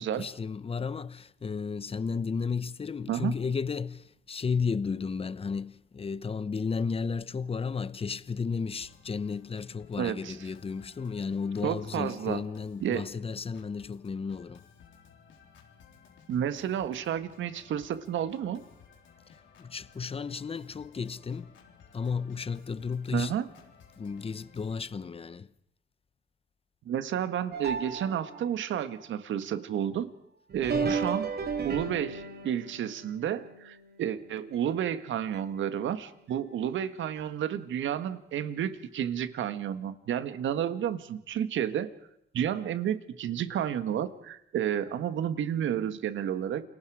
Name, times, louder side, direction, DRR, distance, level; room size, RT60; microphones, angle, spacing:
voice 1, 0.0-14.6 19.3-21.5 21.9-23.4 24.0-25.5 30.7-31.1, left 5 dB, 30° left, 0.9 m, -33 dB
Organ, 8.8-24.8, left 6 dB, 75° left, 3.9 m, -57 dB
voice 2, 10.0-10.4 11.6-12.4 12.8-13.0 16.3-18.6 23.1-23.5 26.8-30.1 30.5-31.3 31.6-41.9 42.3-46.6, right 9 dB, 75° right, 1.7 m, -31 dB
sound 1, 27.5-28.7 30.5-34.9 35.3-35.4 36.3-36.4 37.2-37.3, right 5 dB, 55° right, 3.2 m, -35 dB
29.0 x 22.0 x 5.0 m
cardioid pair, 90°, 20 cm